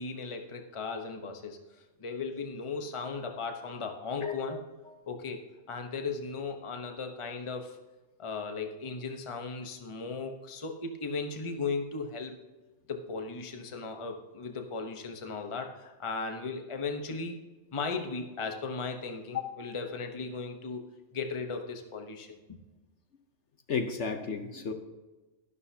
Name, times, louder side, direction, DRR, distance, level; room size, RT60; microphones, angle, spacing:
voice 1, 0.0-1.6 2.0-4.6 5.1-5.4 5.7-7.8 8.2-12.4 12.9-17.4 17.7-22.6, left 4 dB, 25° left, 4 dB, 0.9 m, -37 dB
voice 2, 4.2-4.6 19.3-19.5 23.7-24.7, left 6 dB, 55° left, 5 dB, 1.1 m, -33 dB
12.0 x 11.5 x 2.8 m, 1.2 s
omnidirectional pair, 1.5 m